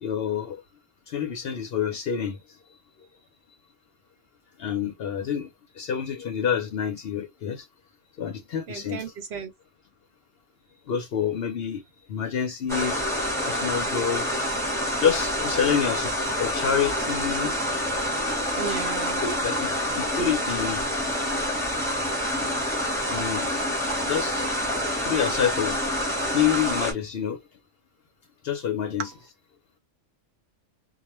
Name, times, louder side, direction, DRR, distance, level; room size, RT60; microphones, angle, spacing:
voice 1, 0.0-0.6 1.1-2.4 4.6-5.5 5.8-7.7 8.2-9.1 10.9-11.8 12.1-13.0 13.4-14.3 15.0-16.1 16.4-17.5 19.2-20.9 23.1-23.5 24.1-24.5 25.0-25.8 26.3-27.4 28.4-29.1, left 8 dB, 60° left, 0.7 m, -27 dB
voice 2, 8.7-9.5 18.5-19.2 29.0-29.1, right 6 dB, 60° right, 0.8 m, -33 dB
sound 1, 12.7-26.9, equal, 5° left, 0.7 m, -27 dB
2.3 x 2.1 x 2.9 m
omnidirectional pair, 1.3 m